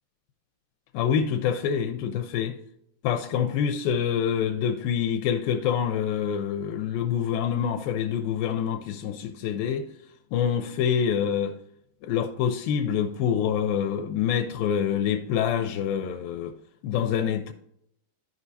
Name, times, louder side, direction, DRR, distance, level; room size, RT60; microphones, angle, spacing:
voice 1, 0.9-2.6 3.0-9.8 10.3-11.5 12.0-16.5 16.8-17.5, left 8 dB, 85° left, 2.3 m, -26 dB
12.5 x 5.0 x 2.7 m
omnidirectional pair, 4.1 m